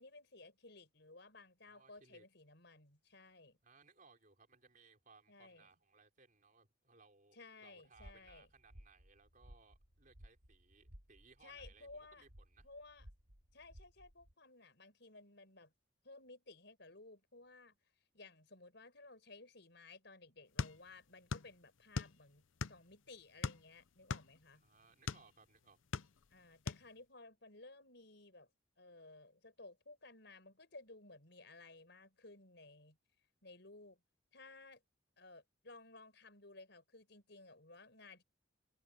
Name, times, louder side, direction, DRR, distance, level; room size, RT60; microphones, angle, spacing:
voice 1, 0.0-3.6 5.3-5.7 7.3-8.5 11.4-12.2 12.6-13.1 13.5-15.7 16.0-17.8 18.1-24.6 26.3-28.5 28.8-33.0 33.4-34.0 34.3-34.8 35.2-38.2, left 3 dB, 55° left, 6.4 m, -57 dB
voice 2, 1.7-2.3 3.6-12.7 24.5-25.8, right 4 dB, 40° right, 4.6 m, -66 dB
sound 1, 7.9-14.3, equal, 70° right, 4.0 m, -60 dB
sound 2, 20.6-21.5 21.8-22.9 23.4-25.3 25.7-26.4 26.7-26.9, left 4 dB, 75° left, 0.7 m, -40 dB
head